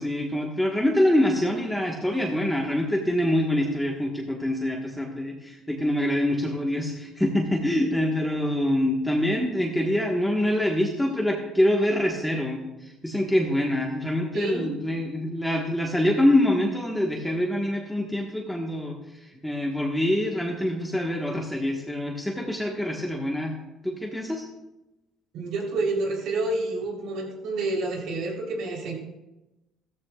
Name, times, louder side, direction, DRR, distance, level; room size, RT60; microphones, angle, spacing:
voice 1, 0.0-23.6 23.8-24.5, left 1 dB, 5° left, -1 dB, 1.4 m, -25 dB
voice 2, 14.3-14.7 25.3-28.9, right 2 dB, 70° right, 0 dB, 3.6 m, -29 dB
15.0 x 14.0 x 2.4 m, 0.99 s
cardioid pair, 120°, 0 cm